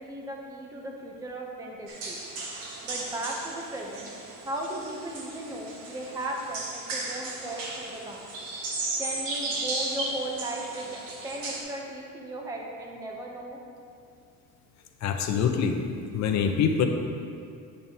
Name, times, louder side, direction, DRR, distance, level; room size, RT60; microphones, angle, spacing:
voice 1, 0.0-2.2 2.8-4.1 4.4-8.3 9.0-13.6, right 1 dB, 10° right, 0 dB, 0.6 m, -36 dB
sound 1, 1.9-11.6, right 2 dB, 80° right, 1.3 m, -35 dB
voice 2, 15.0-15.8 16.1-16.9, left 7 dB, 55° left, 4 dB, 0.7 m, -24 dB
8.8 x 7.8 x 2.8 m, 2.4 s
cardioid pair, 165°, 34 cm